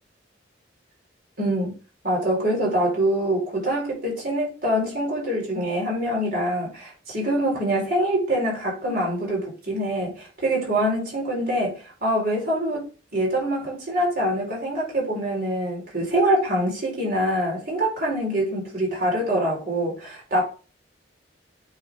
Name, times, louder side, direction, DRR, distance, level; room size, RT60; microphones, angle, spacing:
voice 1, 1.4-1.7 2.0-12.9 13.1-20.4, right 1 dB, 55° right, 4.3 m, -24 dB
8.4 x 4.4 x 3.6 m
head